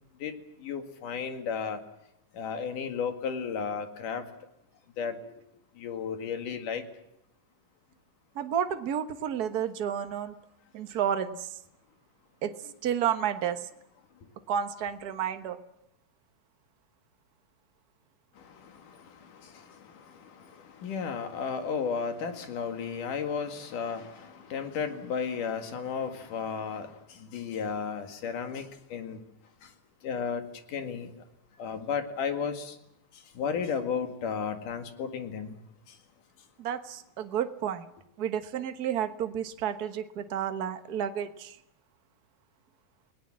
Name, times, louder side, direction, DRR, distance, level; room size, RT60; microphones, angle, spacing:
voice 1, 0.6-1.8 2.3-4.3 5.0-5.3 5.8-6.8 18.4-29.2 29.6-29.7 30.0-31.1 31.6-32.8 33.4-35.6 35.9-36.0, left 6 dB, 75° left, 6 dB, 3.5 m, -34 dB
voice 2, 8.3-10.3 10.7-11.6 12.4-12.5 12.8-13.6 14.5-15.6 36.6-37.9 38.2-41.6, right 9 dB, 65° right, 8 dB, 0.9 m, -31 dB
29.5 x 18.5 x 7.5 m, 0.81 s
omnidirectional pair, 3.7 m